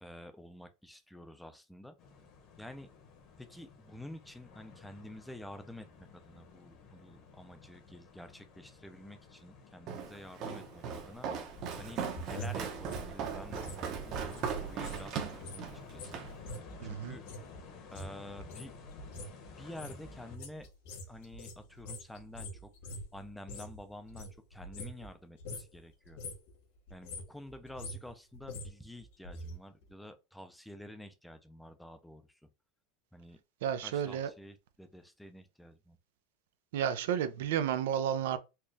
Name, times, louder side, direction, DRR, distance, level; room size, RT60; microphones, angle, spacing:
voice 1, 0.0-2.0 2.6-2.9 3.4-5.9 6.3-11.3 11.8-17.3 17.9-18.7 19.6-20.7 21.1-22.7 23.1-26.2 26.9-32.3 33.1-33.4 33.8-36.0, left 1 dB, 5° left, 0.4 m, -49 dB
sound 1, 2.0-20.4, left 5 dB, 40° left, 1.0 m, -54 dB
Walk footsteps, 9.9-16.3, right 7 dB, 45° right, 0.8 m, -38 dB
sound 2, 11.5-15.0 15.3-23.8 24.1-25.1 25.4-25.8 26.1-26.5 26.9-29.5 29.8-29.9, left 1 dB, 70° left, 1.7 m, -45 dB
voice 2, 16.8-17.1 33.6-34.3 36.7-38.4, right 9 dB, 85° right, 0.5 m, -32 dB
4.4 x 2.4 x 3.2 m
supercardioid pair, 150°, 0 cm